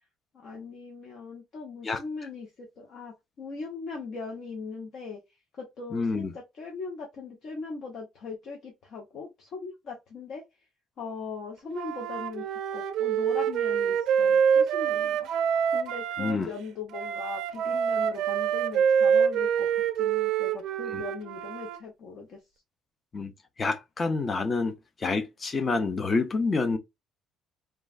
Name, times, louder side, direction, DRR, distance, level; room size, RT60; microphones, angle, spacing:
voice 1, 0.3-5.2 5.6-10.4 11.0-12.4 12.7-15.3 15.7-19.7 20.0-22.4, left 4 dB, 55° left, 0.9 m, -39 dB
voice 2, 5.9-6.3 16.2-16.5 20.9-21.0 23.1-23.3 23.6-26.8, left 3 dB, 25° left, 0.5 m, -28 dB
Wind instrument woodwind instrument, 11.7-16.4 16.9-21.8, right 8 dB, 65° right, 0.4 m, -26 dB
3.1 x 2.3 x 2.4 m
cardioid pair, 150°, 0 cm